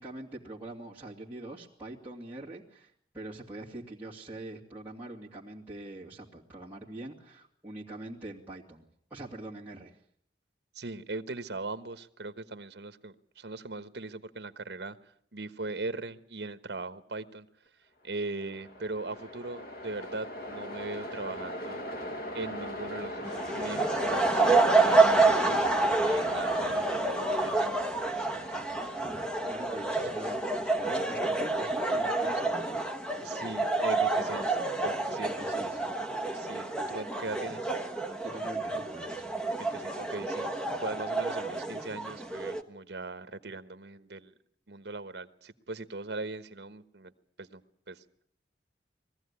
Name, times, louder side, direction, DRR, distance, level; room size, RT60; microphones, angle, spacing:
voice 1, 0.0-8.8 9.1-10.0 29.4-32.8 35.2-35.9 38.2-39.3, right 2 dB, 10° right, -8 dB, 2.8 m, -44 dB
voice 2, 10.7-15.0 15.3-17.5 18.0-21.8 22.3-28.7 33.2-35.7 36.3-37.6 39.6-40.5 40.8-44.3 44.7-47.1 47.4-47.6 47.9-48.0, right 3 dB, 70° right, 12 dB, 1.2 m, -40 dB
Train, 18.1-35.3, left 1 dB, 55° left, 1.7 m, -41 dB
sound 1, 23.2-42.6, right 3 dB, 5° left, 1.3 m, -28 dB
21.5 x 15.0 x 9.8 m, 0.68 s
head